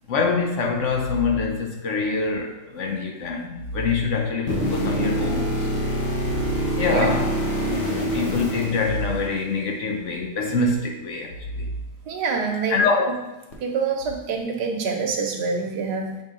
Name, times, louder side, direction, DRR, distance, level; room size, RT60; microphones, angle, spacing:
voice 1, 0.1-5.8 6.7-7.3 8.0-11.7 12.7-13.1, left 4 dB, 70° left, 3 dB, 0.7 m, -25 dB
sound 1, 4.5-9.5 13.5-13.6, equal, 45° left, 1.1 m, -25 dB
voice 2, 6.9-7.2 12.1-12.8 13.1-13.2 13.6-16.2, right 5 dB, 70° right, 2 dB, 1.4 m, -26 dB
7.4 x 3.6 x 3.6 m, 1.0 s
omnidirectional pair, 1.9 m